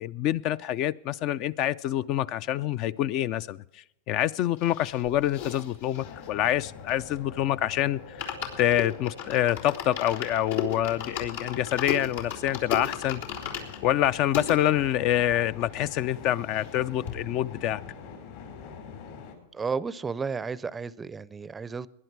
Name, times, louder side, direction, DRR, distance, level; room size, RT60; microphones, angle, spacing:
voice 1, 0.0-3.6 4.1-13.2 13.8-17.8, left 12 dB, 50° left, 0.5 m, -26 dB
sound 1, 4.6-7.4 7.7-7.8 8.0-14.6 15.1-15.2 15.4-15.5 15.8-16.8 17.1-17.2, left 7 dB, 85° left, 3.6 m, -36 dB
sound 2, 6.0-19.4, left 6 dB, 65° left, 4.6 m, -44 dB
voice 2, 19.5-21.9, right 5 dB, 15° right, 0.5 m, -32 dB
20.0 x 10.5 x 4.7 m
hypercardioid pair, 115°, 0 cm